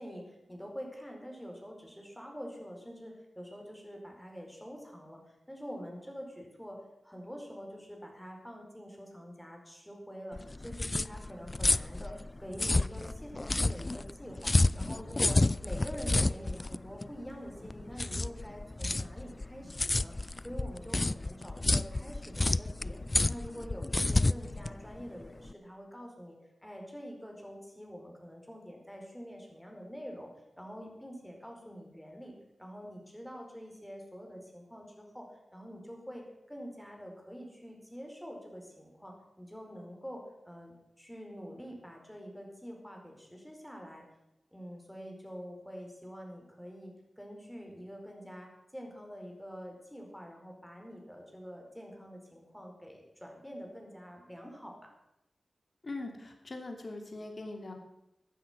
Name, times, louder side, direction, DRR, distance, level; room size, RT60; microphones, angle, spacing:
voice 1, 0.0-6.8 7.0-20.1 20.4-23.0 23.3-30.3 30.6-32.3 32.6-35.3 35.5-44.0 44.5-54.9, equal, 5° left, 1 dB, 4.6 m, -46 dB
sound 1, 10.3-25.5, left 2 dB, 35° left, 0.4 m, -30 dB
voice 2, 55.8-57.7, left 2 dB, 55° left, 3 dB, 2.9 m, -41 dB
14.5 x 10.0 x 6.1 m, 0.87 s
cardioid pair, 55°, 0 cm